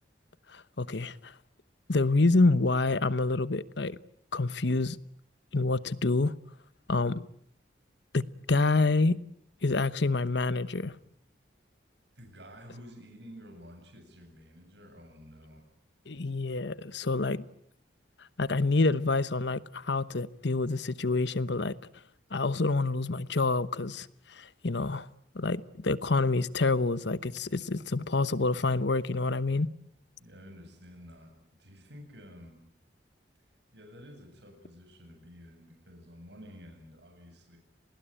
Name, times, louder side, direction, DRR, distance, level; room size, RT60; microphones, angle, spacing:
voice 1, 0.5-1.3 1.9-3.9 4.3-5.0 5.5-6.3 6.9-7.2 8.1-9.2 9.6-11.0 16.1-17.4 18.4-21.7 22.3-25.1 25.3-29.7, left 3 dB, 65° left, 1.0 m, -27 dB
voice 2, 12.1-15.7 30.2-32.7 33.7-37.6, equal, 65° right, 8.0 m, -51 dB
29.5 x 20.0 x 9.0 m
head